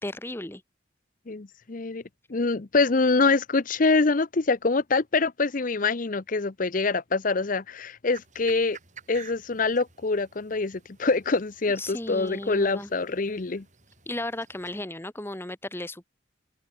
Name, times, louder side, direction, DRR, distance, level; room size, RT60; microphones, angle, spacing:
voice 1, 0.0-0.6 11.8-12.9 14.1-16.1, left 1 dB, 10° left, 1.2 m, -35 dB
voice 2, 1.3-2.0 2.3-8.8 9.1-13.6, left 3 dB, 45° left, 0.7 m, -25 dB
sound 1, 8.1-14.8, right 7 dB, 40° right, 6.6 m, -52 dB
open air
head